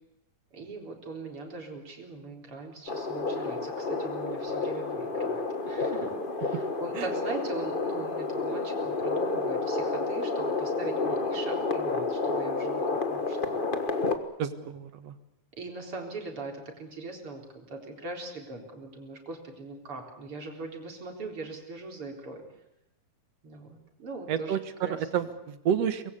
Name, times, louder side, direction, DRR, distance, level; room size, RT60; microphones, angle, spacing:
voice 1, 0.5-6.1 6.4-13.6 14.5-14.6 15.6-22.4 23.4-24.6 24.8-25.0, right 3 dB, 45° right, 2 dB, 4.9 m, -40 dB
sound 1, 2.9-14.2, left 3 dB, 35° left, 0.8 m, -30 dB
voice 2, 14.4-15.2 24.3-26.1, right 8 dB, 60° right, 11 dB, 2.4 m, -30 dB
24.5 x 21.5 x 8.3 m, 0.85 s
omnidirectional pair, 3.4 m